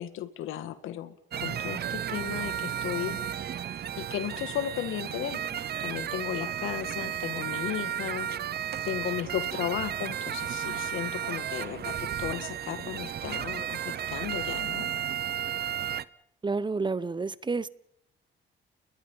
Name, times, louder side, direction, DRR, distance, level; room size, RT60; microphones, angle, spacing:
voice 1, 0.0-3.2 4.0-8.3 8.9-14.9, left 11 dB, 85° left, 13 dB, 1.8 m, -35 dB
sound 1, 1.3-16.1, right 10 dB, 55° right, 0.9 m, -33 dB
voice 2, 16.4-17.7, right 4 dB, 25° right, 19 dB, 0.9 m, -29 dB
30.0 x 21.0 x 5.5 m, 0.73 s
cardioid pair, 90°, 20 cm